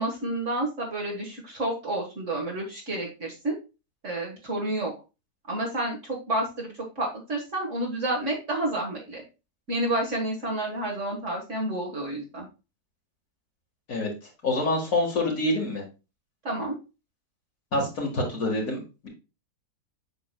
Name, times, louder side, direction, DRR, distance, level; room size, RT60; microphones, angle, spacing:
voice 1, 0.0-3.6 4.0-4.9 5.5-6.7 6.9-9.2 9.7-12.5 16.4-16.7, right 1 dB, 50° right, -1 dB, 1.7 m, -30 dB
voice 2, 14.4-15.8 17.7-19.1, left 2 dB, 60° left, -1 dB, 2.0 m, -26 dB
7.7 x 5.7 x 2.2 m, 0.29 s
omnidirectional pair, 1.7 m